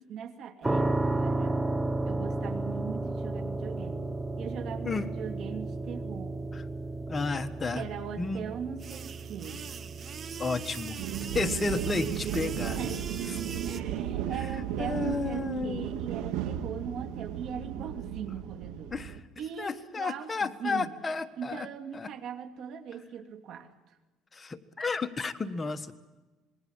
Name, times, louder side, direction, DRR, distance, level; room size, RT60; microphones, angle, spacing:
voice 1, 0.0-1.6 2.1-4.1 4.4-6.4 7.7-9.6 12.8-13.4 13.6-18.9 19.4-20.9 21.4-24.0, right 7 dB, 60° right, 7 dB, 2.7 m, -40 dB
sound 1, 0.6-15.5, right 2 dB, 10° right, 1.1 m, -34 dB
voice 2, 7.1-7.8 8.2-8.5 10.4-13.0 14.8-15.9 18.9-19.2 19.6-21.7 21.9-22.1 24.3-25.9, left 4 dB, 25° left, 9 dB, 1.4 m, -32 dB
sound 2, 8.8-13.8, right 7 dB, 40° right, 1.5 m, -41 dB
sound 3, 11.0-19.2, right 10 dB, 85° right, 1.9 m, -35 dB
26.5 x 22.0 x 7.3 m, 1.2 s
cardioid pair, 105°, 0 cm